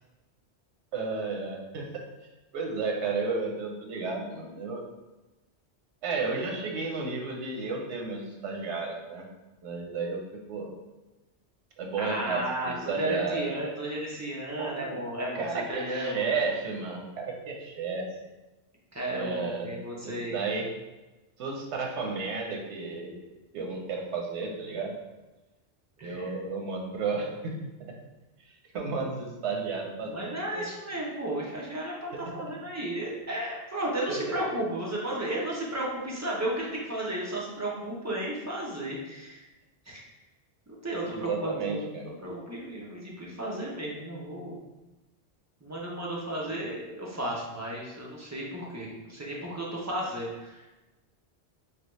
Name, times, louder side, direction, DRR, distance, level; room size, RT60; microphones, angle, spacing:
voice 1, 0.9-1.9 2.5-4.8 6.0-9.3 9.6-10.7 11.8-13.5 14.6-15.0 15.3-18.1 19.1-20.7 21.4-25.0 26.0-27.9 28.7-30.7 32.1-32.5 34.1-34.2 41.1-42.1 46.5-46.6, right 4 dB, 85° right, 1 dB, 0.9 m, -33 dB
voice 2, 12.0-16.3 18.9-20.4 26.0-26.2 30.1-39.4 39.9-40.0 40.7-41.9 42.2-44.6 45.6-50.6, right 1 dB, 25° right, -5 dB, 0.4 m, -34 dB
3.3 x 2.3 x 3.0 m, 1.1 s
omnidirectional pair, 1.1 m